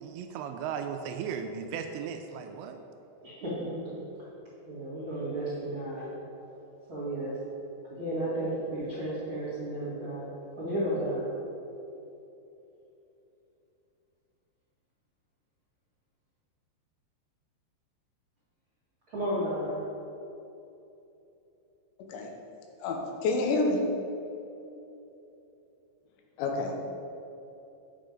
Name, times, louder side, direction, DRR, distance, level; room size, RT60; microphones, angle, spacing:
voice 1, 0.0-2.8, right 7 dB, 85° right, 6 dB, 2.7 m, -36 dB
voice 2, 3.2-4.0 4.7-6.1 6.9-7.4 7.9-10.3 10.6-11.3 19.1-19.8, right 1 dB, 55° right, -9 dB, 1.4 m, -33 dB
voice 3, 22.8-23.8 26.4-26.7, left 3 dB, 80° left, 2 dB, 3.3 m, -28 dB
9.1 x 7.0 x 5.1 m, 3.0 s
omnidirectional pair, 5.3 m